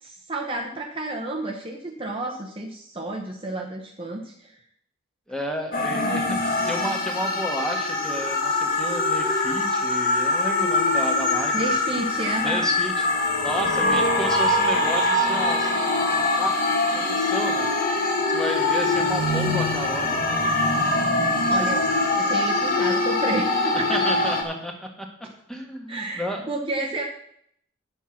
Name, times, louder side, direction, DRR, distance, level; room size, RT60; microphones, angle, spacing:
voice 1, 0.0-4.6 11.5-12.7 13.7-14.0 21.5-21.8 22.2-24.0 25.9-27.0, right 2 dB, 25° right, 0 dB, 1.0 m, -30 dB
voice 2, 5.3-11.5 12.4-15.7 16.4-16.6 16.9-17.7 18.3-20.2 23.7-24.7 25.0-25.1 25.5-26.5, equal, 5° left, 2 dB, 1.5 m, -32 dB
sound 1, 5.7-24.4, left 2 dB, 40° left, 1.7 m, -23 dB
10.0 x 7.2 x 5.9 m, 0.69 s
head